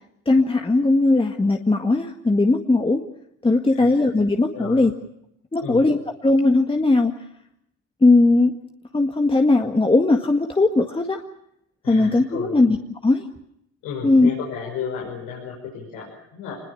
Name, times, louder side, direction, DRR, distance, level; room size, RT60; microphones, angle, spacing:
voice 1, 0.3-3.0 3.4-4.9 5.5-7.1 8.0-8.5 8.9-11.2 11.9-12.8 13.0-13.3 14.0-14.3, left 2 dB, 15° left, 3 dB, 1.8 m, -18 dB
voice 2, 3.7-4.0 4.5-4.8 5.6-5.9 11.8-12.6 13.8-16.6, left 6 dB, 85° left, -2 dB, 6.1 m, -33 dB
25.0 x 21.0 x 7.1 m, 0.76 s
supercardioid pair, 75°, 31 cm